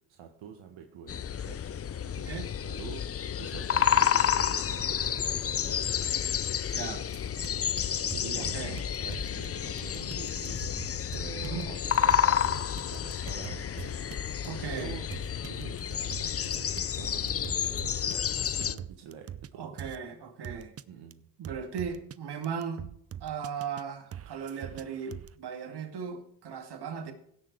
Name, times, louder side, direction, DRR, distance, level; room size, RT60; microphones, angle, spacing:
voice 1, 0.1-1.6 2.6-3.0 3.4-6.1 7.5-10.8 11.1-13.7 14.6-15.1 15.4-19.7 20.9-21.3, right 7 dB, 75° right, 4 dB, 1.6 m, -46 dB
sound 1, 1.1-18.8, left 8 dB, 30° left, 0.6 m, -30 dB
voice 2, 2.2-2.5 6.7-7.0 8.4-8.8 11.4-11.7 14.4-14.9 19.6-20.7 21.4-22.8 23.2-27.1, right 7 dB, 55° right, 6 dB, 2.3 m, -37 dB
sound 2, 7.1-7.5 7.8-7.9 8.1-9.5 9.8-16.5 16.8-17.0 17.3-19.5 19.8-20.0 20.4-20.8 21.1-21.2 21.4-22.2 22.4-23.8 24.1-25.3, right 9 dB, 35° right, 0.5 m, -43 dB
16.5 x 6.5 x 4.7 m, 0.69 s
cardioid pair, 80°, 47 cm